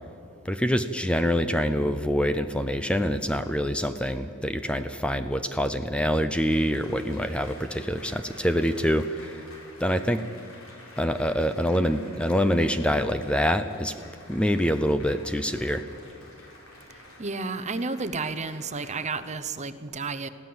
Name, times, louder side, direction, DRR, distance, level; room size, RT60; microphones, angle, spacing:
voice 1, 0.4-9.4 9.8-10.2 11.0-13.9 14.3-15.8, equal, 5° left, 10 dB, 0.6 m, -25 dB
Applause, 6.3-19.2, left 2 dB, 70° left, 4.5 m, -49 dB
voice 2, 17.2-20.3, right 4 dB, 35° right, 12 dB, 0.8 m, -31 dB
22.0 x 15.5 x 7.9 m, 2.6 s
head